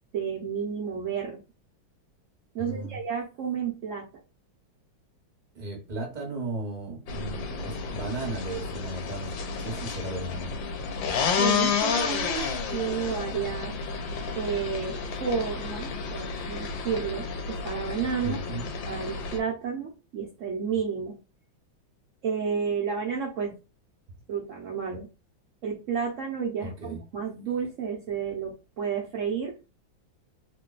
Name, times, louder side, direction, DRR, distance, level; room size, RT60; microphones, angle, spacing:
voice 1, 0.1-1.4 2.5-4.1 11.4-13.8 14.3-18.4 18.9-21.2 22.2-23.6 24.3-25.1 25.6-29.5, right 6 dB, 75° right, -1 dB, 0.7 m, -31 dB
voice 2, 2.6-3.0 5.5-9.3 9.6-10.5 18.2-18.7 26.6-27.0, right 2 dB, 30° right, 0 dB, 0.9 m, -35 dB
sound 1, 7.1-19.4, left 5 dB, 75° left, 1.4 m, -31 dB
3.1 x 2.2 x 3.8 m, 0.30 s
omnidirectional pair, 2.1 m